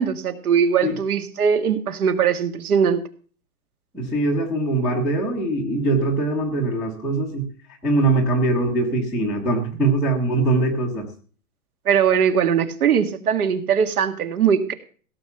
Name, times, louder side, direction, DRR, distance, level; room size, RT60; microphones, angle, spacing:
voice 1, 0.0-3.0 11.9-14.7, right 7 dB, 80° right, 8 dB, 1.9 m, -20 dB
voice 2, 3.9-7.5 7.8-11.1, right 2 dB, ahead, -3 dB, 0.5 m, -22 dB
16.5 x 6.5 x 6.8 m, 0.42 s
hypercardioid pair, 160°, 44 cm